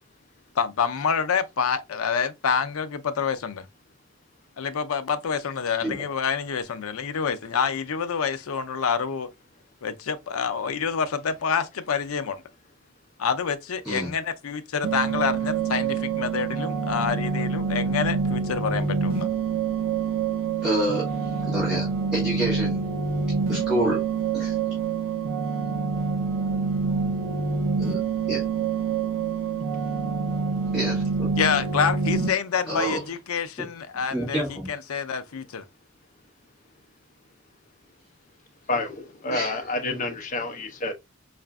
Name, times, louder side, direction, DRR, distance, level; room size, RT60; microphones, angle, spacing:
voice 1, 0.6-3.6 4.6-9.3 9.8-12.4 13.2-19.3 31.4-34.4 34.7-35.6, left 6 dB, 80° left, 0.5 m, -27 dB
sound 1, 14.8-32.3, right 5 dB, 70° right, 0.5 m, -26 dB
voice 2, 20.6-22.8 23.5-24.0 24.3-24.6 27.8-28.0 28.3-28.5 30.7-31.3 32.7-33.0 34.1-34.7 39.3-39.8, right 1 dB, 5° right, 1.7 m, -28 dB
voice 3, 38.7-40.9, left 2 dB, 35° left, 0.7 m, -29 dB
4.8 x 2.5 x 2.2 m
head